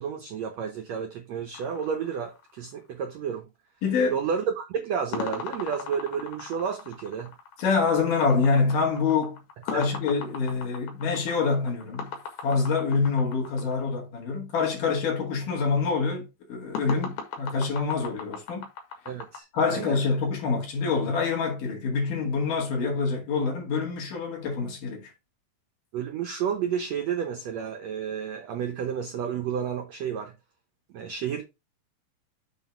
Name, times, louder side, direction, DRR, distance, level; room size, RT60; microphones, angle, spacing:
voice 1, 0.0-3.5 4.1-7.3 9.7-9.8 19.1-20.0 25.9-30.3 30.9-31.4, right 7 dB, 70° right, 1.6 m, -31 dB
sound 1, 1.5-2.9 5.1-13.7 16.7-19.4, left 6 dB, 85° left, 3.6 m, -38 dB
voice 2, 3.8-4.2 7.6-18.7 19.5-25.1, left 4 dB, 65° left, 3.6 m, -26 dB
7.8 x 3.7 x 4.4 m
omnidirectional pair, 4.1 m